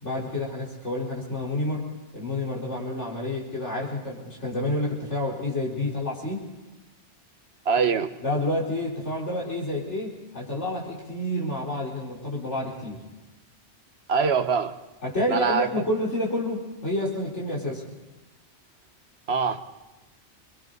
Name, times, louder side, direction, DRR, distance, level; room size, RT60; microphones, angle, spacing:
voice 1, 0.0-1.9 2.1-6.5 8.2-13.0 15.0-17.9, left 1 dB, 75° left, -4 dB, 4.4 m, -29 dB
voice 2, 7.6-8.1 14.1-14.8 15.3-15.7 19.3-19.6, right 5 dB, 60° right, 9 dB, 1.3 m, -23 dB
29.0 x 23.0 x 4.0 m, 1.1 s
omnidirectional pair, 1.2 m